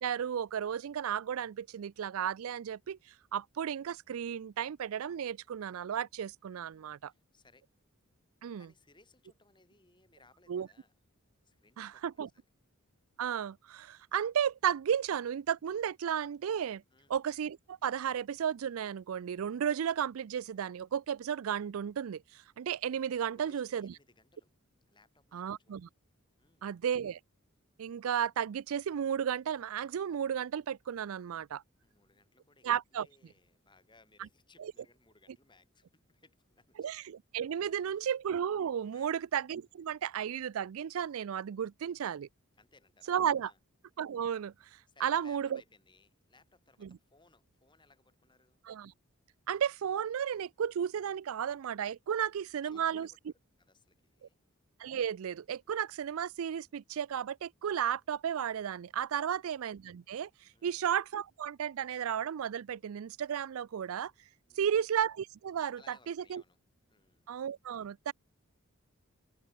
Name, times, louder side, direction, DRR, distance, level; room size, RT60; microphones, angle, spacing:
voice 1, 0.0-3.0 3.3-7.1 8.4-8.7 10.5-10.7 11.8-12.3 13.2-16.8 17.1-23.9 25.3-25.9 26.6-27.2 27.8-31.6 32.6-33.1 34.6-34.7 36.8-42.3 43.1-43.5 44.0-45.6 46.8-47.0 48.7-48.9 49.5-53.1 54.8-60.3 60.6-64.1 64.6-65.9 66.3-66.4 67.3-68.1, right 8 dB, 75° right, 0.4 m, -34 dB
voice 2, 7.0-7.7 8.6-11.0 11.4-12.5 16.9-17.1 23.2-24.6 24.9-25.9 26.4-26.7 31.8-36.8 37.6-38.1 38.9-39.2 42.6-43.6 44.9-48.6 52.1-53.2 53.6-54.4 59.1-59.4 60.5-60.9 64.4-64.8 65.7-66.6 66.9-67.3, left 3 dB, 20° left, 8.0 m, -65 dB
head